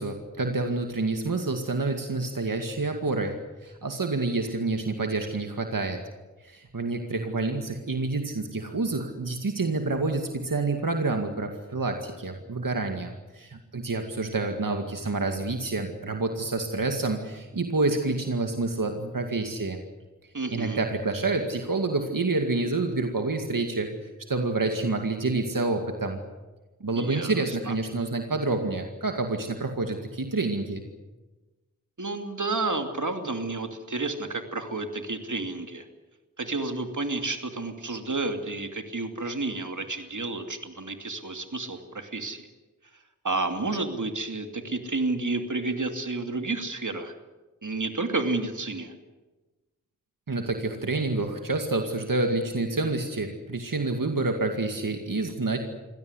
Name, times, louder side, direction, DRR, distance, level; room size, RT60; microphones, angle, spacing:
voice 1, 0.0-6.0 6.4-19.8 20.5-23.9 24.3-26.2 26.8-30.8 50.3-55.6, right 3 dB, 85° right, 4 dB, 2.2 m, -28 dB
voice 2, 20.3-20.8 27.0-27.7 32.0-35.9 36.4-42.5 43.2-47.1 47.6-48.9, right 3 dB, 65° right, 6 dB, 2.7 m, -31 dB
25.0 x 17.0 x 9.8 m, 1.2 s
wide cardioid pair, 45°, 32 cm